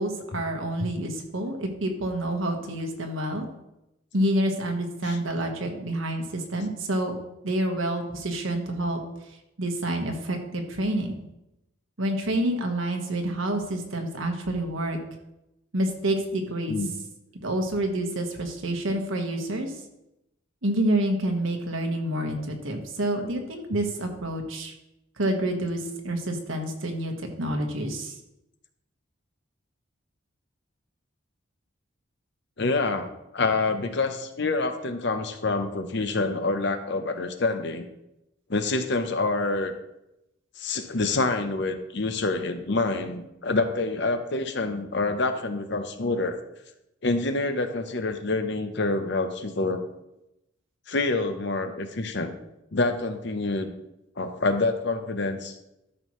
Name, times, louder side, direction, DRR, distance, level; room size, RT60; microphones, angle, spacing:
voice 1, 0.0-3.5 4.1-7.2 7.4-9.0 9.6-11.2 12.0-15.0 15.7-16.8 17.4-19.8 20.6-24.7 25.2-28.2, right 1 dB, 80° right, 3 dB, 1.4 m, -28 dB
voice 2, 32.6-37.9 38.5-39.7 40.6-46.4 47.0-49.8 50.9-52.3 52.7-53.7 54.2-55.6, left 3 dB, 55° left, 8 dB, 0.8 m, -27 dB
12.5 x 6.1 x 3.2 m, 0.89 s
head